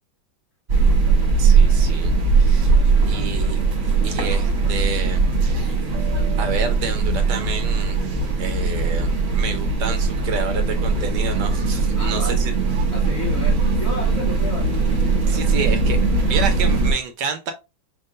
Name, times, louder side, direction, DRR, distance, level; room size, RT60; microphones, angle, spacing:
sound 1, 0.7-16.9, right 4 dB, 45° right, 1.5 m, -19 dB
voice 1, 1.4-2.7 3.1-3.6 4.0-5.7 6.4-12.5 15.3-16.0 16.3-17.5, right 5 dB, 70° right, 1.1 m, -29 dB
voice 2, 2.7-3.2 12.0-12.4 12.9-15.7, left 1 dB, 45° left, 1.0 m, -34 dB
5.4 x 3.6 x 2.5 m
omnidirectional pair, 2.1 m